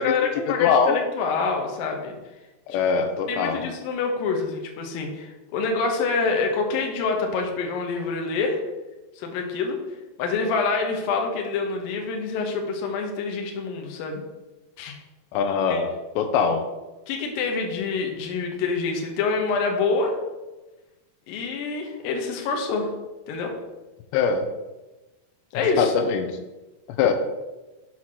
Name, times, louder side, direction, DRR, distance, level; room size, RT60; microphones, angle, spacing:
voice 1, 0.0-2.1 2.7-2.8 3.3-8.6 9.2-9.8 10.2-14.2 14.8-15.0 15.7-15.8 17.1-20.2 21.3-22.9 23.3-23.5 25.5-25.9, left 4 dB, 70° left, 2 dB, 2.4 m, -26 dB
voice 2, 0.6-1.0 2.7-3.7 15.3-16.7 24.1-24.5 25.8-26.4 27.0-27.1, left 6 dB, 85° left, 7 dB, 2.8 m, -22 dB
7.5 x 4.1 x 6.1 m, 1.1 s
omnidirectional pair, 5.0 m